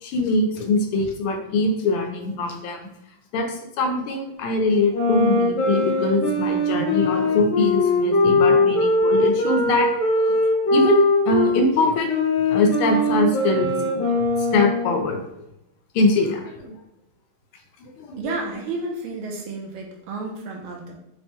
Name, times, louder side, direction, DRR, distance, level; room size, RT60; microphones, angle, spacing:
voice 1, 0.0-2.9 3.3-9.9 10.1-12.1 12.5-15.2 15.9-16.8 17.8-18.3, left 2 dB, 85° left, 3 dB, 1.6 m, -23 dB
sound 1, 4.9-11.6 12.1-15.1, left 2 dB, 60° left, 1.0 m, -20 dB
voice 2, 18.2-20.9, right 3 dB, 80° right, 0 dB, 1.6 m, -31 dB
5.2 x 2.1 x 2.9 m, 0.81 s
omnidirectional pair, 2.4 m